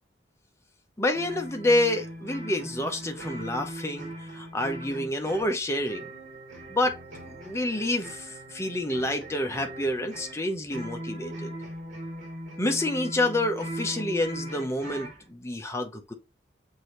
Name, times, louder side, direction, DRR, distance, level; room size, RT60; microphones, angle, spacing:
voice 1, 1.0-6.1 6.7-7.0 7.3-11.5 12.6-16.1, left 1 dB, 15° left, 0.7 m, -28 dB
sound 1, 1.1-15.2, right 1 dB, 45° right, 2.0 m, -40 dB
6.1 x 2.8 x 3.0 m
head